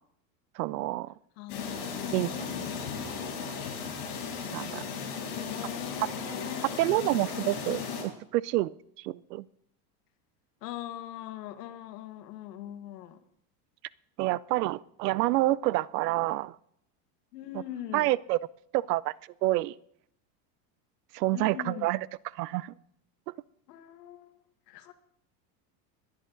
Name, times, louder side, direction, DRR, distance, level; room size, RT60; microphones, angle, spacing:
voice 1, 0.6-1.1 2.1-2.3 4.5-4.8 6.8-9.4 14.2-16.6 17.9-18.4 18.7-19.1 19.4-19.7 21.1-22.0 22.4-22.7, right 17 dB, 85° right, 22 dB, 0.6 m, -28 dB
voice 2, 1.4-2.8 5.2-6.7 10.6-13.2 17.3-18.1 21.3-21.9 23.7-24.4 24.7-24.9, left 12 dB, 90° left, 8 dB, 1.7 m, -41 dB
sound 1, 1.5-8.0, left 6 dB, 65° left, 7.9 m, -36 dB
20.0 x 11.0 x 3.9 m, 0.70 s
supercardioid pair, 180°, 47 cm